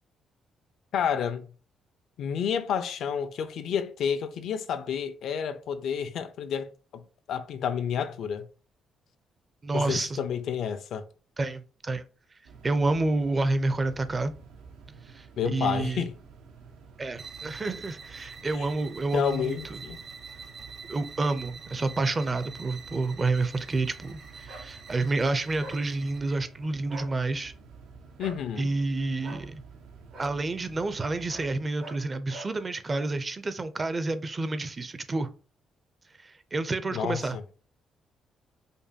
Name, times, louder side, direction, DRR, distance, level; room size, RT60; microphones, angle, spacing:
voice 1, 0.9-1.5 2.2-6.7 6.9-7.0 7.3-8.4 9.7-11.0 15.4-16.1 18.6-18.7 19.1-20.0 28.2-28.7 36.9-37.4, left 8 dB, 75° left, 0.4 m, -30 dB
voice 2, 9.6-10.2 11.4-12.0 12.6-14.3 15.0-16.0 17.0-19.8 20.9-27.5 28.6-29.6 30.2-35.3 36.2-37.4, right 3 dB, 30° right, 0.4 m, -29 dB
sound 1, 12.4-31.6, right 5 dB, 90° right, 0.6 m, -50 dB
sound 2, 17.1-26.5, right 5 dB, 55° right, 0.9 m, -46 dB
sound 3, 24.5-24.7 25.6-25.8 26.8-27.1 28.2-28.4 29.2-29.4 30.1-30.3 31.3-31.5 31.8-32.0 32.3-32.5, right 2 dB, 75° right, 2.0 m, -43 dB
5.1 x 2.2 x 2.7 m
cardioid pair, 90°, 0 cm